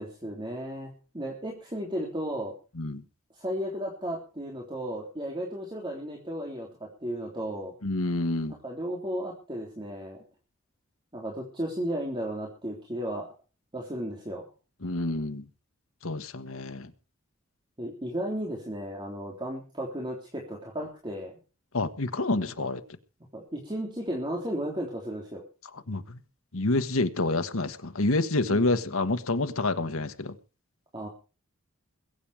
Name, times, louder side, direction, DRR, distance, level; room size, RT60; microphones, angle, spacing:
voice 1, 0.0-2.5 3.4-7.8 8.6-10.2 11.1-13.3 13.7-14.5 17.8-21.4 22.6-22.7 23.3-25.4 28.5-28.7 30.9-31.1, equal, 25° right, 3.4 m, -34 dB
voice 2, 7.8-8.5 14.8-15.5 16.0-16.9 21.7-22.8 25.7-26.2 26.5-30.3, left 2 dB, 80° left, 1.4 m, -28 dB
21.5 x 9.0 x 4.9 m
head